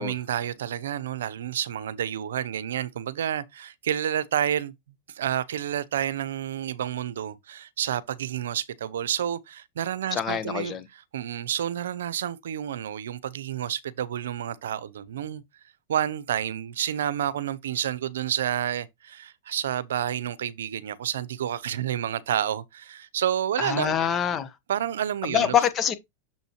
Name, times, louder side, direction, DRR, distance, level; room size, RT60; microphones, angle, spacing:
voice 1, 0.0-4.7 5.1-10.8 11.1-15.4 15.9-24.0 24.7-25.5, right 10 dB, 85° right, 0.6 m, -29 dB
voice 2, 10.1-10.9 23.6-24.5 25.3-25.9, left 9 dB, 30° left, 1.2 m, -25 dB
7.0 x 5.4 x 3.0 m
hypercardioid pair, 115°, 0 cm